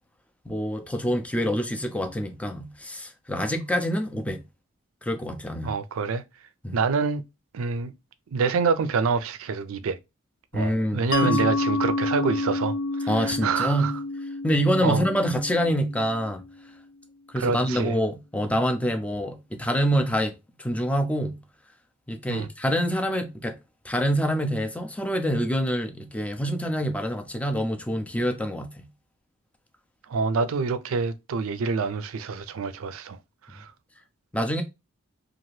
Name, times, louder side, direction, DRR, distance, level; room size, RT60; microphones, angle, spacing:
voice 1, 0.5-4.4 5.0-5.7 6.6-6.8 10.5-11.4 13.1-13.9 14.4-16.4 17.3-20.3 20.6-21.4 22.1-23.5 23.8-28.9 34.3-34.6, equal, 5° left, 0.4 m, -26 dB
voice 2, 5.6-6.2 6.7-7.2 7.5-7.9 8.3-10.0 10.5-12.7 13.0-13.9 14.8-15.0 17.4-18.0 22.3-22.5 30.1-33.2 33.5-33.7, right 5 dB, 70° right, 0.4 m, -26 dB
Mallet percussion, 11.1-16.5, left 2 dB, 65° left, 0.5 m, -29 dB
2.8 x 2.4 x 3.0 m
head